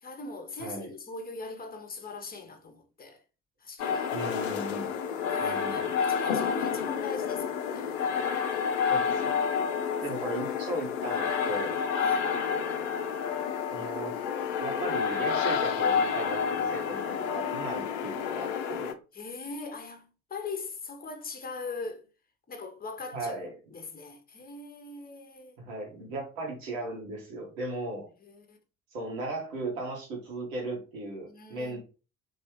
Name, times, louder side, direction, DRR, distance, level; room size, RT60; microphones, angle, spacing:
voice 1, 0.0-3.2 3.6-4.1 4.8-8.0 12.0-12.3 19.1-22.1 22.5-23.3 23.7-25.6 28.2-28.6 31.3-31.8, left 3 dB, 20° left, 0.9 m, -40 dB
voice 2, 0.6-0.9 4.1-4.9 5.4-5.9 8.9-9.4 10.0-11.8 13.7-14.1 14.6-18.9 23.1-23.5 25.6-28.1 28.9-31.8, right 2 dB, 75° right, 1.4 m, -36 dB
sound 1, 3.8-18.9, left 6 dB, 70° left, 0.6 m, -29 dB
3.2 x 3.0 x 3.1 m
figure-of-eight pair, 45°, 40 cm